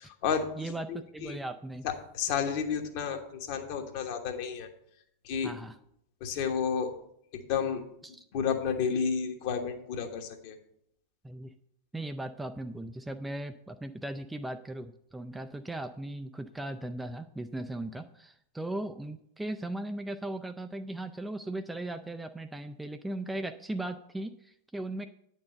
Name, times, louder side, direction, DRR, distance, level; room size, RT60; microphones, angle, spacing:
voice 1, 0.0-0.5 1.2-1.4 1.8-4.7 5.2-5.5 6.2-6.9 7.3-10.5, left 7 dB, 45° left, 5 dB, 1.2 m, -31 dB
voice 2, 0.6-1.9 5.4-5.8 8.0-8.2 11.2-11.5 11.9-25.1, right 1 dB, 5° right, 8 dB, 0.4 m, -38 dB
9.3 x 4.6 x 6.5 m, 0.74 s
figure-of-eight pair, 90°, 0 cm